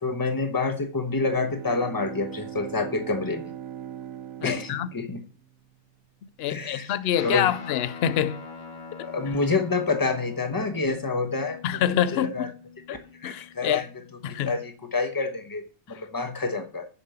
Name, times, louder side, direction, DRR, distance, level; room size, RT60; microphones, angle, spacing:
voice 1, 0.0-3.5 4.4-5.2 6.4-6.9 7.2-7.5 9.0-11.8 12.2-12.5 13.2-13.9 14.5-16.9, left 3 dB, 15° left, 1.0 m, -28 dB
Bowed string instrument, 1.1-5.6, right 10 dB, 80° right, 1.1 m, -40 dB
voice 2, 4.4-4.9 6.4-8.4 11.6-12.5 12.9-13.9 14.2-14.5, left 10 dB, 60° left, 0.7 m, -26 dB
Guitar, 7.2-14.8, left 4 dB, 80° left, 2.2 m, -44 dB
7.0 x 6.2 x 6.9 m
omnidirectional pair, 1.4 m